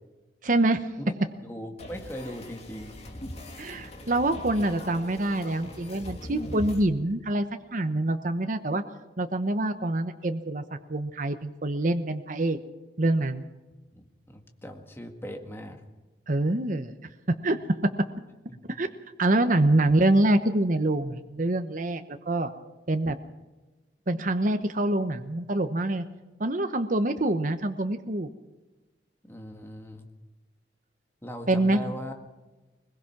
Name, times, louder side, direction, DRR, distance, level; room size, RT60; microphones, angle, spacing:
voice 1, 0.4-0.9 3.6-7.5 7.7-8.8 9.2-10.6 10.9-12.6 13.0-13.4 16.3-16.9 17.3-17.6 17.8-17.9 18.7-18.9 19.2-22.5 22.9-23.2 24.1-26.0 26.4-28.3 31.5-31.8, right 1 dB, 50° right, 8 dB, 1.0 m, -25 dB
voice 2, 1.4-3.0 13.9-15.8 18.5-18.6 19.6-19.7 29.3-30.1 31.2-32.2, equal, 15° left, 3 dB, 1.9 m, -39 dB
sound 1, 1.8-6.8, left 1 dB, 40° left, 2.9 m, -40 dB
22.0 x 21.0 x 6.0 m, 1.2 s
head